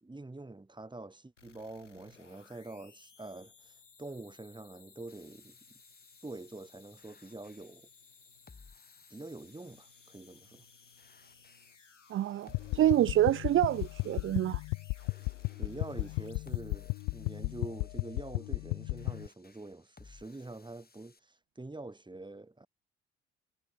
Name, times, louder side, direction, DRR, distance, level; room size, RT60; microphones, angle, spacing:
voice 1, 0.0-5.8 6.2-7.9 9.1-10.7 15.6-22.7, right 2 dB, 15° right, 2.8 m, -46 dB
sound 1, 1.4-17.3, left 5 dB, 85° left, 4.5 m, -60 dB
sound 2, 5.1-21.2, left 4 dB, 25° left, 5.3 m, -62 dB
voice 2, 12.1-14.6, right 12 dB, 35° right, 0.5 m, -27 dB
sound 3, 12.5-19.3, left 29 dB, 65° left, 1.0 m, -35 dB
figure-of-eight pair, 45°, 36 cm